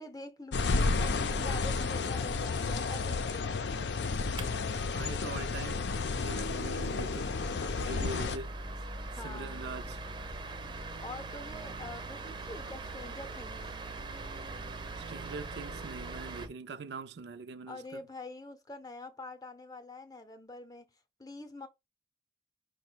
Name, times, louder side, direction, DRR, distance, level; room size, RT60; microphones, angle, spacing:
voice 1, 0.0-3.7 9.1-9.6 11.0-13.6 17.7-20.9 21.2-21.7, left 2 dB, 20° left, 0.6 m, -45 dB
sound 1, 0.5-8.4, left 4 dB, 75° left, 0.5 m, -32 dB
sound 2, 4.0-16.5, right 2 dB, 25° right, 0.6 m, -42 dB
voice 2, 4.9-5.8 6.2-7.3 7.8-8.6 9.2-10.0 15.0-18.0, right 4 dB, 75° right, 0.5 m, -42 dB
5.1 x 2.2 x 4.4 m
head